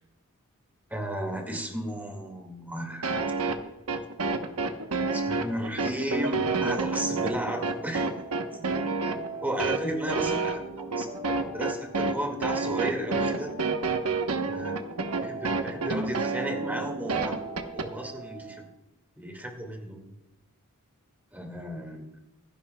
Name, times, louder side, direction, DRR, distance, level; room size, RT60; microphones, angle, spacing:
voice 1, 0.9-3.3 5.1-8.0 9.1-9.2 9.4-13.5 14.4-14.8 15.2-18.7 19.2-20.0 21.3-22.1, equal, 10° right, 3 dB, 1.9 m, -34 dB
sound 1, 3.0-17.9, right 4 dB, 80° right, 1.0 m, -29 dB
sound 2, 7.1-18.7, right 3 dB, 45° right, 3.0 m, -42 dB
25.0 x 11.5 x 2.3 m, 0.92 s
head